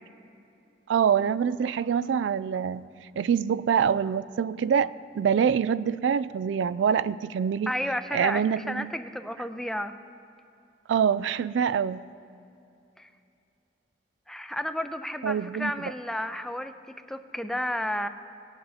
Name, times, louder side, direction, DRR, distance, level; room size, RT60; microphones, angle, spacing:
voice 1, 0.9-2.9 3.2-7.7 8.1-8.9 10.9-12.1 15.2-15.7, right 7 dB, 85° right, 17 dB, 0.3 m, -25 dB
voice 2, 7.7-10.0 13.0-13.1 14.3-16.7 17.1-18.1, left 1 dB, 5° left, 9 dB, 0.4 m, -32 dB
18.5 x 8.0 x 4.2 m, 2.7 s
head